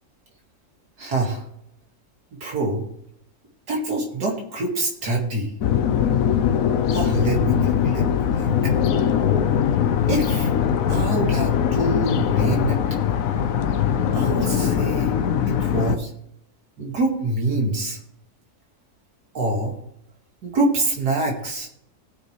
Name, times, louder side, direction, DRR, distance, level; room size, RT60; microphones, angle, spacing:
voice 1, 1.0-1.4 2.4-2.8 3.7-5.5 6.9-8.5 10.1-10.5 10.9-12.8 14.1-15.1 15.5-16.1 16.8-18.0 19.3-19.7 20.4-21.7, right 2 dB, 85° right, -1 dB, 2.7 m, -25 dB
sound 1, 5.6-16.0, left 8 dB, 65° left, 1.0 m, -21 dB
19.5 x 6.7 x 3.3 m, 0.75 s
omnidirectional pair, 1.7 m